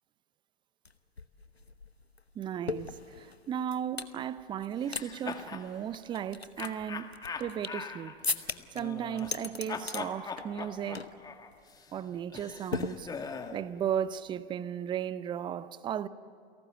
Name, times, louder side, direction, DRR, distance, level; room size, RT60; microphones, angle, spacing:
sound 1, 0.8-0.9 1.2-4.2 4.6-5.1 5.3-5.4 5.9-7.9 8.2-8.8 9.2-10.0 10.4-10.7 10.9-11.2 11.5-11.7 12.7-13.5, left 4 dB, 90° left, 1.0 m, -37 dB
voice 1, 2.4-8.1 8.7-11.1 11.9-13.1 13.5-16.1, right 9 dB, 15° right, 0.6 m, -35 dB
sound 2, 4.8-5.7 6.6-9.4 9.7-13.6, left 5 dB, 10° left, 1.5 m, -41 dB
29.5 x 18.0 x 7.9 m
figure-of-eight pair, 100°, 30 cm